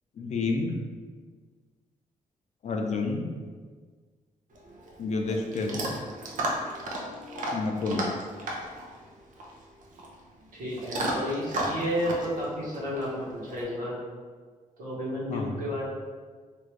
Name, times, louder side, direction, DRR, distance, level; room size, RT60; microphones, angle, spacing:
voice 1, 0.2-0.7 2.6-3.3 5.0-5.8 7.5-8.1 15.3-15.5, left 3 dB, 55° left, 2 dB, 0.5 m, -29 dB
Chewing mastication / Dog, 4.5-13.6, right 1 dB, 75° right, 0.6 m, -35 dB
voice 2, 10.5-13.9 14.8-15.8, equal, 90° right, -7 dB, 1.3 m, -32 dB
3.3 x 2.5 x 3.2 m, 1.5 s
cardioid pair, 95°, 14 cm